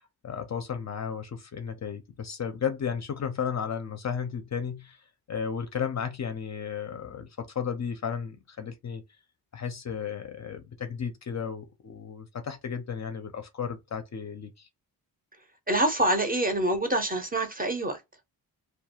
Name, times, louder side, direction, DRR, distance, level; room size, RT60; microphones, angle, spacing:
voice 1, 0.2-5.0 5.3-9.0 9.5-14.7, left 7 dB, 45° left, 0.4 m, -34 dB
voice 2, 15.7-18.0, right 1 dB, 20° right, 0.5 m, -26 dB
2.3 x 2.2 x 2.7 m
wide cardioid pair, 145°, 41 cm